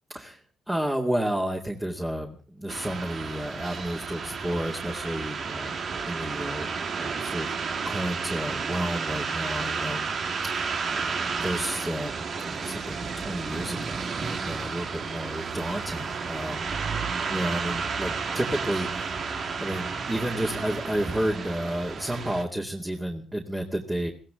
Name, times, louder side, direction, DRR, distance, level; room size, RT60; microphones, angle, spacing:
voice 1, 0.7-5.8 6.1-6.7 7.0-7.5 7.8-10.1 10.5-16.7 17.3-19.2 19.6-24.1, right 1 dB, 10° right, -1 dB, 2.4 m, -31 dB
sound 1, 2.7-22.4, right 5 dB, 55° right, 1.8 m, -32 dB
22.0 x 16.0 x 3.8 m, 0.38 s
cardioid pair, 90°, 0 cm